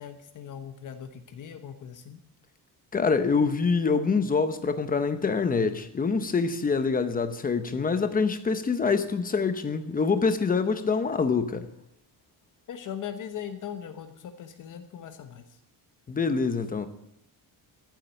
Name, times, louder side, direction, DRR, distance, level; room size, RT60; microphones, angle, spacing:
voice 1, 0.0-2.2 12.7-15.4, left 8 dB, 45° left, 1.1 m, -39 dB
voice 2, 2.9-11.7 16.1-16.9, left 4 dB, 20° left, 0.9 m, -25 dB
14.5 x 7.6 x 8.8 m
cardioid pair, 170°, 42 cm